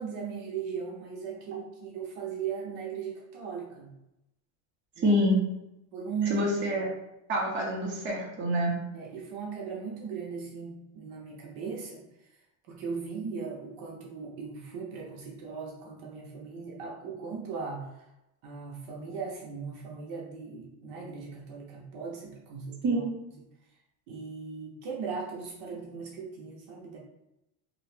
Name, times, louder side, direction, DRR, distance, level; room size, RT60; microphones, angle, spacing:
voice 1, 0.0-3.9 5.0-5.2 5.9-6.4 8.9-12.0 12.7-18.1 18.4-23.0 24.1-27.0, right 6 dB, 65° right, -2 dB, 0.8 m, -38 dB
voice 2, 5.0-5.4 6.3-6.9 7.3-8.8 22.8-23.1, equal, 30° right, -4 dB, 0.8 m, -26 dB
2.7 x 2.4 x 3.3 m, 0.88 s
cardioid pair, 155°, 41 cm